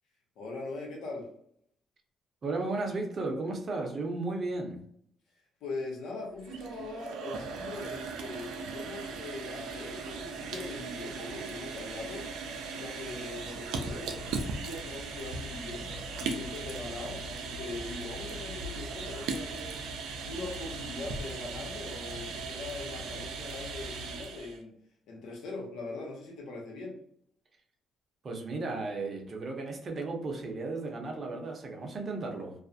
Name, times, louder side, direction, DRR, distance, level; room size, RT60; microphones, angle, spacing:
voice 1, 0.4-1.3 5.6-12.3 12.8-15.9 16.2-19.8 20.3-24.7 25.1-27.0, left 3 dB, 85° left, -1 dB, 0.9 m, -41 dB
voice 2, 2.4-4.8 28.2-32.5, right 3 dB, 45° right, 1 dB, 0.7 m, -34 dB
sound 1, 6.3-24.6, right 4 dB, 90° right, 0.4 m, -38 dB
2.4 x 2.1 x 2.6 m, 0.67 s
cardioid pair, 90°, 0 cm